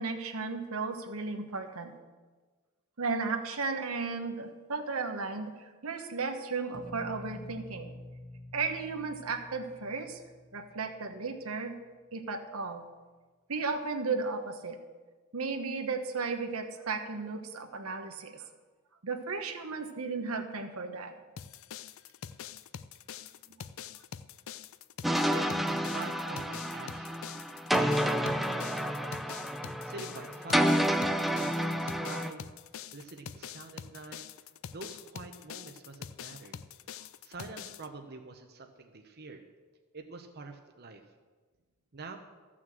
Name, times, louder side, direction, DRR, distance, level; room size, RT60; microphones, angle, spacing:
voice 1, 0.0-1.9 3.0-5.5 5.8-7.9 8.5-10.2 10.5-11.7 12.1-12.8 13.5-14.8 15.3-18.4 19.0-21.2, right 4 dB, 80° right, 5 dB, 1.2 m, -34 dB
sound 1, 6.7-11.6, left 1 dB, 20° left, 1.4 m, -48 dB
sound 2, 21.4-37.9, left 8 dB, 65° left, 0.5 m, -45 dB
sound 3, 25.0-32.3, equal, ahead, 0.5 m, -30 dB
voice 2, 25.0-29.4 29.8-31.0 31.3-32.4 32.9-34.2 34.7-36.6 37.2-39.4 39.9-41.0 41.9-42.2, right 3 dB, 50° right, 4 dB, 0.9 m, -45 dB
14.0 x 6.3 x 7.5 m, 1.4 s
head